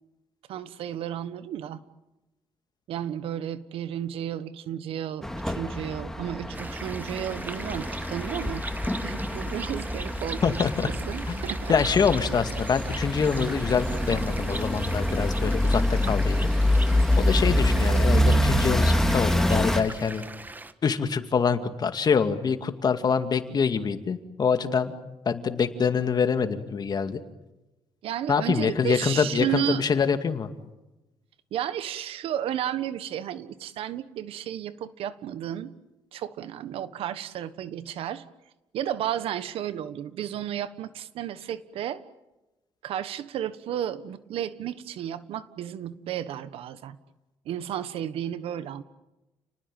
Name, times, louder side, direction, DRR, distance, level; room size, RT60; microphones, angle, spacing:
voice 1, 0.5-1.8 2.9-8.6 9.0-10.6 10.8-11.7 28.0-29.9 31.5-35.7 36.1-38.2 38.7-42.0 42.8-47.0 47.4-48.8, right 10 dB, 80° right, 14 dB, 1.3 m, -33 dB
sound 1, 5.2-19.8, left 1 dB, 5° left, 2.2 m, -26 dB
sound 2, 6.5-20.7, right 2 dB, 20° right, 1.5 m, -40 dB
voice 2, 10.4-10.9 11.3-11.4 11.7-16.4 17.2-20.2 20.8-24.9 25.3-27.2 28.3-30.5, left 6 dB, 45° left, 8 dB, 2.3 m, -25 dB
30.0 x 19.5 x 9.1 m, 1.0 s
cardioid pair, 90°, 10 cm